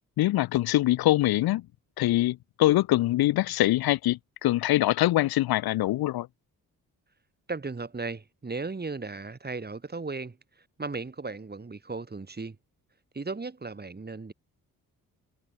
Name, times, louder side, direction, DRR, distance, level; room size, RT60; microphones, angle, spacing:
voice 1, 0.2-1.6 2.0-6.3, left 16 dB, 80° left, 0.6 m, -24 dB
voice 2, 7.5-10.4 10.8-12.6 13.1-14.3, right 3 dB, 25° right, 2.7 m, -36 dB
cardioid pair, 70°, 37 cm